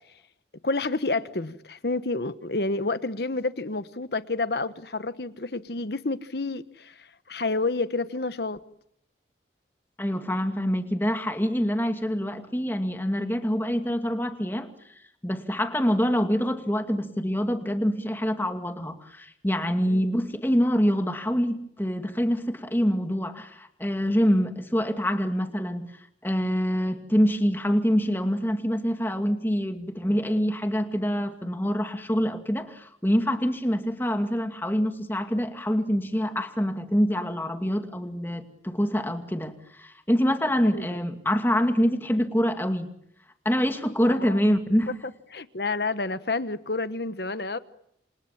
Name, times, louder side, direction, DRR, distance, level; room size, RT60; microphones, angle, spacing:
voice 1, 0.6-8.6 19.9-20.1 40.7-40.9 44.1-44.4 45.3-47.6, left 3 dB, 65° left, 1.2 m, -29 dB
voice 2, 10.0-14.7 15.2-25.9 26.2-42.9 43.4-44.9, equal, 10° left, 2.4 m, -25 dB
28.5 x 27.0 x 7.4 m
head